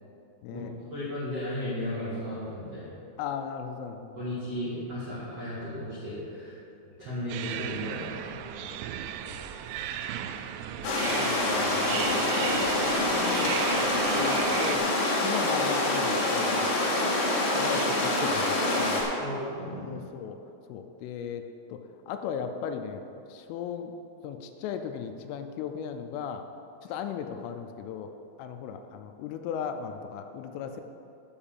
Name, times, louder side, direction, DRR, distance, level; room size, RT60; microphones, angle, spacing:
voice 1, 0.5-2.9 4.1-6.5 7.0-8.4 19.2-19.9, left 1 dB, 65° right, -10 dB, 1.6 m, -35 dB
voice 2, 3.2-4.2 8.6-8.8 9.3-9.4 11.1-12.2 13.1-13.5 14.1-16.9 17.5-19.0 19.8-20.4 20.7-21.4 21.7-21.8 22.1-23.0 23.3-23.9 24.2-26.4 26.8-28.1 28.4-30.8, left 7 dB, 85° left, 7 dB, 3.0 m, -37 dB
sound 1, 7.3-14.8, right 10 dB, 90° right, 3.3 m, -35 dB
sound 2, 10.8-19.0, left 2 dB, 55° left, 2.7 m, -26 dB
8.0 x 6.9 x 7.1 m, 2.7 s
omnidirectional pair, 5.9 m